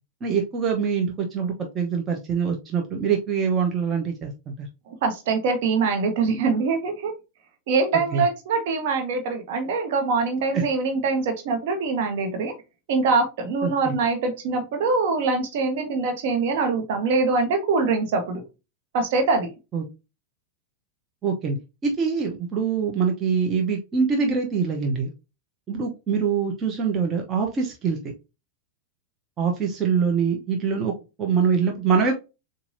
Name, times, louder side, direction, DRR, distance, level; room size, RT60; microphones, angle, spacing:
voice 1, 0.2-4.7 8.1-8.2 10.5-10.7 13.6-13.9 19.7-19.8 21.2-21.6 21.8-25.1 25.7-28.1 29.4-30.9 31.2-32.2, right 6 dB, 25° right, 1 dB, 1.0 m, -24 dB
voice 2, 4.9-7.1 7.7-12.5 12.9-18.4 18.9-19.5, right 4 dB, 50° right, 6 dB, 1.4 m, -23 dB
7.0 x 2.7 x 2.7 m, 0.28 s
figure-of-eight pair, 90°, 0 cm